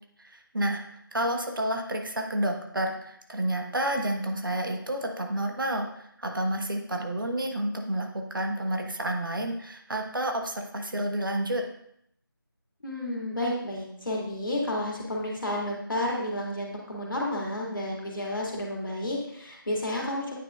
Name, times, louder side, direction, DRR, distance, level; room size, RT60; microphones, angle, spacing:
voice 1, 0.2-0.8 1.1-11.6, right 1 dB, 65° right, 3 dB, 1.1 m, -30 dB
voice 2, 12.8-20.4, left 1 dB, 65° left, -2 dB, 2.1 m, -31 dB
9.1 x 5.2 x 2.4 m, 0.72 s
figure-of-eight pair, 160°, 12 cm